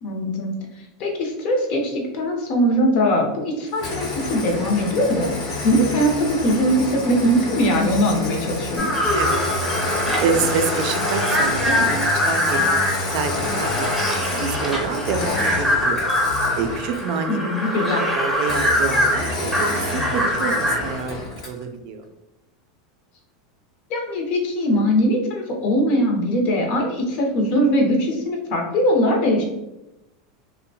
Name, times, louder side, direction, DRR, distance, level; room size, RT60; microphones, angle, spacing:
voice 1, 0.0-0.5 1.0-5.3 5.6-8.9 17.3-18.0 23.9-29.4, equal, 50° left, 1 dB, 0.6 m, -21 dB
Engine starting, 3.7-17.2 18.4-21.6, left 2 dB, 90° left, 0.8 m, -28 dB
sound 1, 8.8-21.0, left 1 dB, 5° right, 0.7 m, -23 dB
voice 2, 9.1-13.9 14.3-17.4 17.9-22.0, right 5 dB, 55° right, 6 dB, 0.3 m, -27 dB
2.7 x 2.1 x 2.7 m, 0.92 s
supercardioid pair, 135°, 3 cm